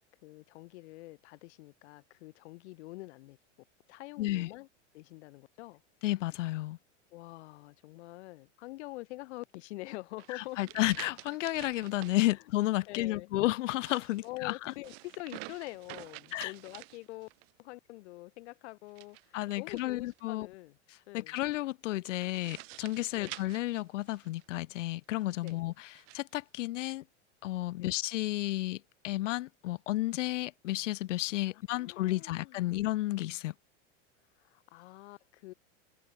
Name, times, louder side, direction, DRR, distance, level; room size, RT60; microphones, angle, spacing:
voice 1, 0.2-3.4 3.9-4.7 4.9-5.8 7.1-10.6 12.3-12.4 12.9-13.3 14.2-17.3 17.6-20.8 21.1-21.4 23.1-23.3 25.4-25.6 27.8-28.0 31.5-32.8 34.4-35.5, left 20 dB, 65° left, 4.0 m, -46 dB
voice 2, 4.2-4.5 6.0-6.8 10.3-14.5 16.3-16.5 19.3-20.5 21.1-25.9 26.1-27.0 27.4-33.5, left 17 dB, 85° left, 0.6 m, -32 dB
sound 1, 10.2-12.2 13.6-17.5 18.9-20.2 22.0-24.5 25.2-26.2, right 29 dB, 55° right, 2.6 m, -49 dB
supercardioid pair, 135°, 36 cm